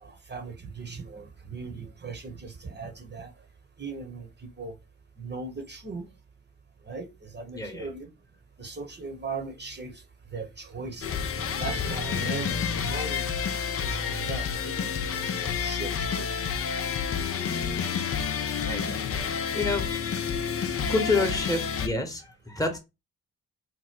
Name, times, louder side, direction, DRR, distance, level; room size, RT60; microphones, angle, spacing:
voice 1, 0.0-3.3 3.8-4.3 4.6-4.7 5.2-6.1 6.9-8.1 8.6-9.9 10.3-11.0 11.6-13.3 13.8-16.3, right 4 dB, 25° right, 4 dB, 1.0 m, -38 dB
voice 2, 7.5-7.9 18.7-19.0 19.5-19.9 20.9-22.8, left 3 dB, 10° left, 5 dB, 1.0 m, -28 dB
sound 1, 11.0-21.9, left 7 dB, 30° left, 0.5 m, -29 dB
2.9 x 2.1 x 3.6 m, 0.24 s
hypercardioid pair, 40°, 44 cm